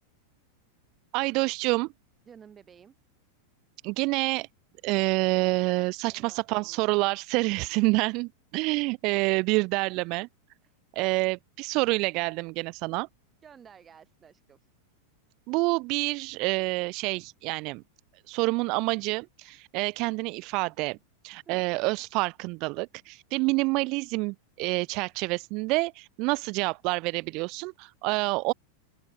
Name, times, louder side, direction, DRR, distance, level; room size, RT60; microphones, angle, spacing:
voice 1, 1.1-1.9 3.8-4.5 4.8-10.3 10.9-13.1 15.5-17.8 18.3-21.0 21.2-28.5, right 26 dB, 40° right, 0.4 m, -27 dB
voice 2, 2.3-3.0 6.1-6.9 10.6-10.8 13.4-14.6 21.5-21.6, right 7 dB, 20° right, 6.6 m, -53 dB
open air
figure-of-eight pair, 90°, 0 cm